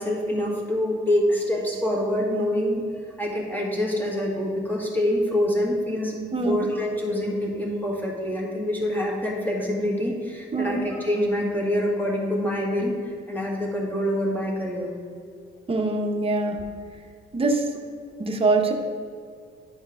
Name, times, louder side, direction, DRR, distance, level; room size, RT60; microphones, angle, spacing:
voice 1, 0.0-6.1 6.4-14.9, left 1 dB, 10° left, -3 dB, 1.9 m, -26 dB
voice 2, 15.7-16.6 17.3-17.7 18.2-18.7, right 3 dB, 30° right, 3 dB, 1.0 m, -23 dB
10.5 x 4.4 x 3.7 m, 2.3 s
cardioid pair, 90°, 20 cm